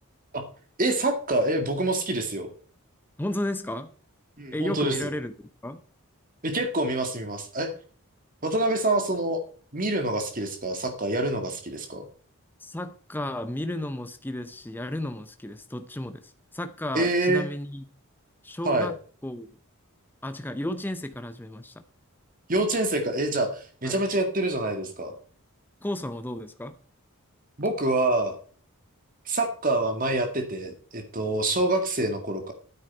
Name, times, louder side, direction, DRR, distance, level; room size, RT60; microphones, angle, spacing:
voice 1, 0.8-2.5 4.4-5.1 6.4-7.7 8.4-9.4 9.7-12.1 16.9-17.5 18.6-18.9 22.5-25.1 27.6-28.3 29.3-32.5, right 2 dB, 40° right, 6 dB, 2.1 m, -26 dB
voice 2, 3.2-3.9 4.5-5.3 5.6-5.8 12.6-17.9 18.4-18.9 19.2-19.5 20.2-21.7 23.8-24.0 25.8-26.8, left 1 dB, 10° left, 9 dB, 0.6 m, -33 dB
9.4 x 9.2 x 4.4 m, 0.43 s
head